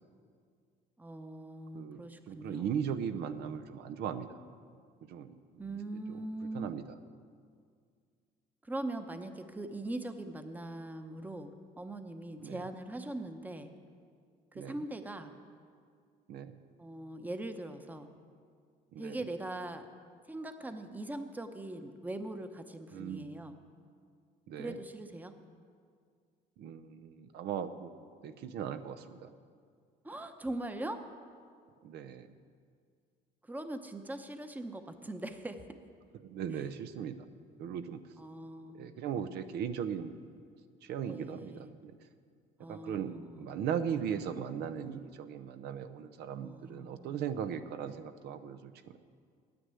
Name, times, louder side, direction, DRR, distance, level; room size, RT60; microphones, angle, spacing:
voice 1, 1.0-2.7 5.6-6.7 8.6-13.7 14.5-15.3 16.8-18.1 19.0-19.9 20.3-23.5 24.6-25.3 30.0-31.0 33.4-35.8 38.2-38.8 41.1-41.7 42.6-43.6 46.4-47.2, right 1 dB, 10° right, 8 dB, 0.8 m, -41 dB
voice 2, 2.3-4.4 5.1-5.3 5.7-5.8 6.1-6.2 6.5-6.8 12.4-12.6 14.5-14.8 16.3-16.6 18.9-19.2 22.9-23.3 24.5-24.8 26.6-27.9 28.2-29.3 31.8-32.3 36.2-37.2 37.6-38.0 38.7-40.1 40.8-41.9 42.7-49.0, right 8 dB, 75° right, 11 dB, 0.7 m, -38 dB
9.6 x 9.6 x 8.2 m, 2.1 s
cardioid pair, 110°, 17 cm